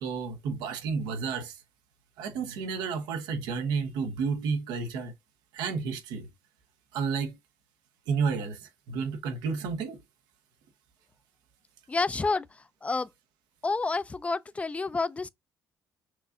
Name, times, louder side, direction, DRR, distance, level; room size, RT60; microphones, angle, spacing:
voice 1, 0.0-1.6 2.2-5.1 5.5-6.3 6.9-7.4 8.1-10.0, right 5 dB, 85° right, 1.0 m, -31 dB
voice 2, 11.9-13.1 13.6-15.3, left 3 dB, 20° left, 0.4 m, -29 dB
6.1 x 2.5 x 2.6 m
cardioid pair, 90°, 7 cm